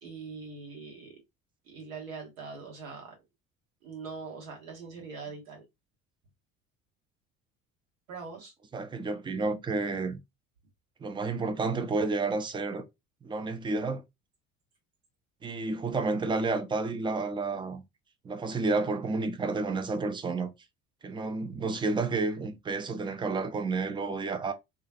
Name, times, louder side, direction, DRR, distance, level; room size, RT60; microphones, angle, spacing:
voice 1, 0.0-1.2 1.6-3.2 3.8-5.6 8.1-8.5, right 4 dB, 75° right, 1.1 m, -42 dB
voice 2, 8.7-10.2 11.0-12.8 13.2-14.0 15.4-17.8 18.2-20.5 21.0-24.5, right 3 dB, 10° right, 0.4 m, -30 dB
2.4 x 2.3 x 2.5 m
figure-of-eight pair, 60°, 41 cm